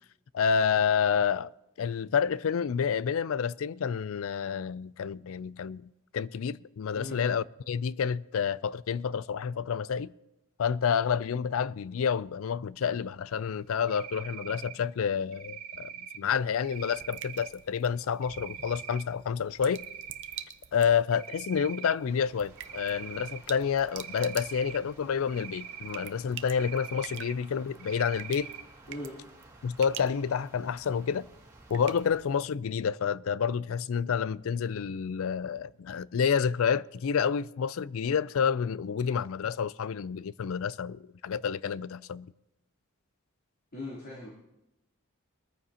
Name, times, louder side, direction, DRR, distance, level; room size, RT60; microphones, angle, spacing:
voice 1, 0.3-1.5 1.8-5.8 6.1-10.1 10.6-19.8 20.7-28.5 29.6-31.3 31.7-42.3, left 7 dB, 70° left, 0.4 m, -29 dB
Cricket, 13.9-14.8 15.3-16.2 16.6-17.5 18.2-19.0 19.5-20.4 20.8-22.0 22.6-23.4 23.9-24.8 25.3-26.1 26.5-27.3 27.8-28.6, right 9 dB, 75° right, 2.0 m, -43 dB
sound 1, 16.2-32.7, right 10 dB, 55° right, 0.7 m, -48 dB
sound 2, 22.0-32.2, right 2 dB, 15° right, 2.2 m, -56 dB
voice 2, 43.7-44.3, left 1 dB, 45° left, 3.2 m, -39 dB
22.0 x 14.0 x 2.8 m
head